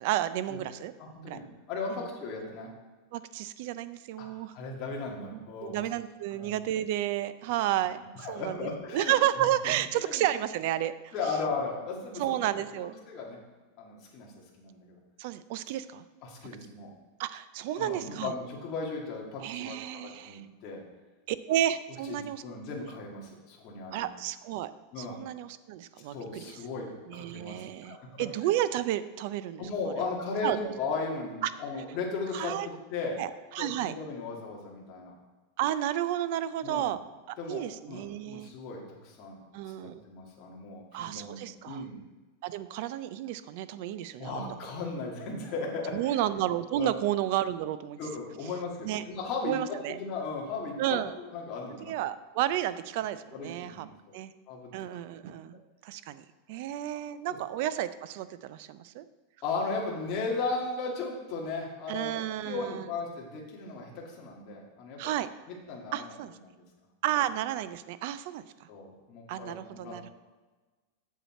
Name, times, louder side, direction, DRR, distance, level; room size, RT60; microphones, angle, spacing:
voice 1, 0.0-0.9 1.3-1.4 3.1-4.5 5.3-11.1 12.2-13.0 15.2-16.0 17.2-18.3 19.4-20.4 21.3-22.4 23.9-24.7 25.0-26.4 27.1-30.0 30.4-30.7 31.4-31.5 32.3-32.7 33.2-33.9 35.6-37.0 37.3-38.5 39.5-40.0 40.9-41.8 42.4-44.4 45.9-48.0 48.8-49.0 49.4-50.0 50.8-51.1 51.9-53.9 54.1-54.3 54.7-59.0 61.9-62.9 65.0-65.3 65.9-66.3 67.0-68.4 69.3-70.1, right 12 dB, 50° right, 15 dB, 0.4 m, -32 dB
voice 2, 1.0-2.7 4.2-4.3 4.5-5.9 6.3-6.5 8.2-10.3 11.1-12.4 12.7-13.4 13.8-14.3 14.6-15.0 16.2-16.9 17.8-20.8 22.0-24.1 24.9-25.2 26.1-28.0 29.6-32.5 32.9-33.2 33.6-35.1 36.6-36.9 37.4-39.4 39.8-41.9 44.2-45.9 46.8-47.0 48.0-51.9 53.3-53.8 54.5-54.7 56.9-57.0 57.3-57.4 59.4-65.0 65.5-66.2 66.5-66.6 68.7-70.1, left 4 dB, 30° left, -2 dB, 1.7 m, -36 dB
7.3 x 7.1 x 4.3 m, 1.3 s
supercardioid pair, 170°, 0 cm